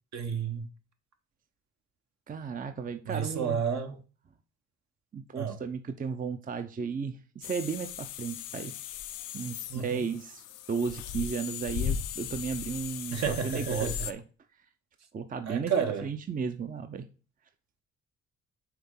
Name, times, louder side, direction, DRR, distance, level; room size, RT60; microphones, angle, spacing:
voice 1, 0.1-0.7 3.0-4.0 5.4-5.6 9.7-10.1 13.1-14.1 15.5-16.1, right 7 dB, 65° right, 1.2 m, -31 dB
voice 2, 2.3-3.6 5.1-8.7 9.3-14.2 15.1-15.7 16.0-17.1, right 6 dB, 30° right, 0.6 m, -34 dB
sound 1, 7.4-14.1, left 9 dB, 90° left, 0.6 m, -37 dB
6.0 x 3.8 x 5.4 m
cardioid pair, 90°, 30 cm